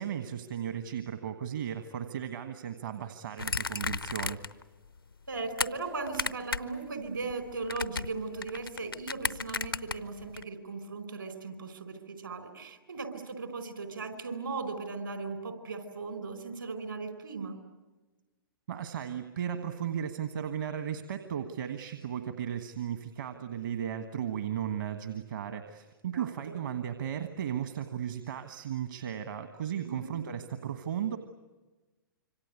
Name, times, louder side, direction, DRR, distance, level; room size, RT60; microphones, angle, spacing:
voice 1, 0.0-4.4 18.7-31.2, right 9 dB, 60° right, 8 dB, 1.5 m, -35 dB
sound 1, 3.4-4.6 5.0-5.7 6.1-6.8 7.0-10.4, left 4 dB, 90° left, 0.8 m, -34 dB
voice 2, 5.3-17.6 26.1-26.5 29.8-30.1, right 4 dB, 75° right, 8 dB, 4.4 m, -38 dB
27.0 x 25.0 x 8.3 m, 1.2 s
figure-of-eight pair, 110°, 12 cm